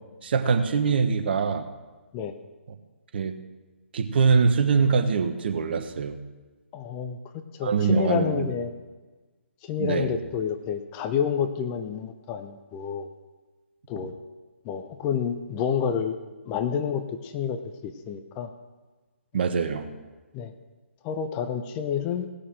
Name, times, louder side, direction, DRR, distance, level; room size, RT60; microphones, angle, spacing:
voice 1, 0.2-1.7 3.1-3.4 3.9-6.2 7.6-8.5 9.8-10.2 19.3-19.9, right 5 dB, 50° right, 7 dB, 1.2 m, -23 dB
voice 2, 6.7-7.2 7.5-8.7 9.6-13.1 13.9-14.1 14.6-16.2 16.5-18.5 20.3-20.5 21.0-22.3, left 7 dB, 20° left, 8 dB, 0.7 m, -29 dB
17.5 x 6.8 x 6.2 m, 1.3 s
figure-of-eight pair, 140°, 7 cm